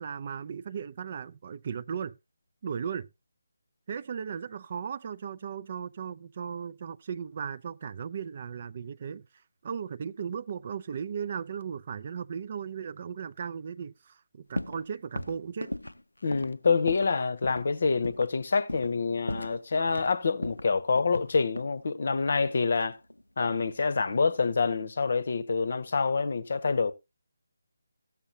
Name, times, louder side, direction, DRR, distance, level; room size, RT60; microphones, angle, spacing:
voice 1, 0.0-2.2 2.6-3.1 3.9-9.3 9.6-15.7, right 7 dB, 35° right, 0.4 m, -36 dB
sound 1, 14.6-14.9 15.2-17.2 17.4-17.7 18.0-18.4 18.7-19.0 19.3-20.1 20.4-21.8 22.7-23.6 23.9-24.4, left 1 dB, 75° left, 0.5 m, -37 dB
voice 2, 16.2-23.0 23.4-26.9, left 4 dB, 45° left, 0.8 m, -27 dB
15.0 x 7.1 x 2.8 m
figure-of-eight pair, 150°, 0 cm